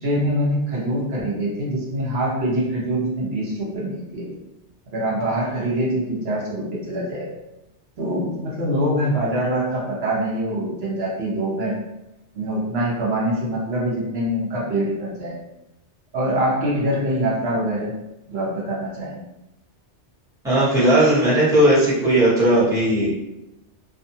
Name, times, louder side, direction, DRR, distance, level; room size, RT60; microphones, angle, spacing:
voice 1, 0.0-4.3 4.9-7.3 8.0-11.7 12.3-15.3 16.1-17.9 18.3-19.2, right 1 dB, 60° right, -5 dB, 1.1 m, -24 dB
voice 2, 20.4-23.1, right 1 dB, 5° right, -12 dB, 1.2 m, -17 dB
2.6 x 2.4 x 2.7 m, 0.91 s
omnidirectional pair, 1.2 m